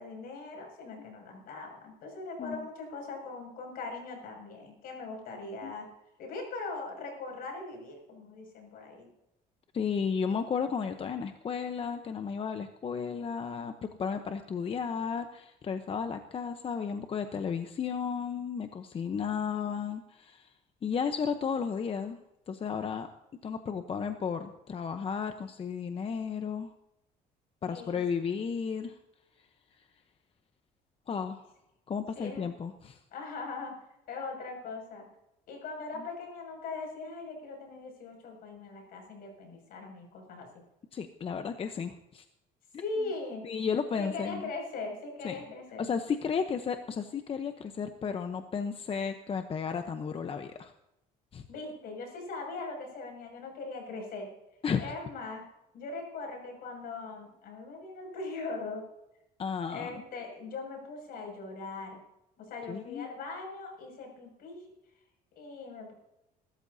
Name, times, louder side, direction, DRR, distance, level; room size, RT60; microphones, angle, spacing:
voice 1, 0.0-5.9 6.2-9.1 27.7-28.0 32.1-32.5 33.1-33.7 34.1-35.1 35.5-40.5 42.8-43.5 44.0-45.9 51.5-54.3 54.8-55.5 55.7-58.8 59.7-62.0 62.4-64.7 65.3-65.9, left 3 dB, 70° left, 2 dB, 6.6 m, -40 dB
voice 2, 9.7-13.7 14.0-20.5 20.8-22.2 22.5-23.1 23.4-26.7 27.6-29.0 31.1-31.4 31.9-33.0 40.9-42.2 43.4-44.5 45.2-45.4 45.8-50.7 51.3-51.4 54.6-54.9 59.4-59.9 62.7-63.1, left 6 dB, 35° left, 7 dB, 0.9 m, -33 dB
22.5 x 13.5 x 2.8 m, 0.88 s
cardioid pair, 110°, 16 cm